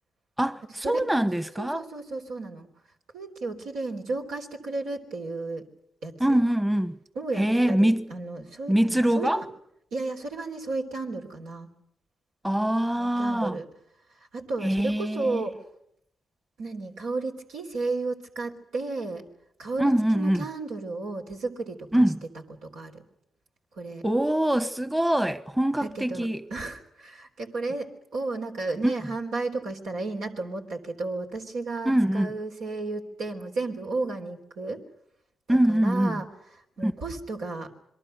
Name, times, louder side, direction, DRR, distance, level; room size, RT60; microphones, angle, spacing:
voice 1, 0.4-1.8 6.2-6.9 7.4-8.1 8.7-9.4 12.4-13.6 14.6-15.4 19.8-20.4 21.9-22.2 24.0-26.4 28.8-28.9 31.8-32.3 35.5-36.1 36.8-36.9, right 1 dB, 15° right, 1.2 m, -23 dB
voice 2, 1.6-2.7 3.1-5.6 6.0-6.4 7.2-9.3 9.9-11.7 13.0-13.7 14.3-15.6 16.6-19.2 19.6-22.1 22.6-23.0 23.7-24.0 25.8-34.8 35.5-36.3 36.8-37.7, right 3 dB, 85° right, 3.5 m, -33 dB
27.0 x 22.5 x 6.7 m
supercardioid pair, 45°, 0 cm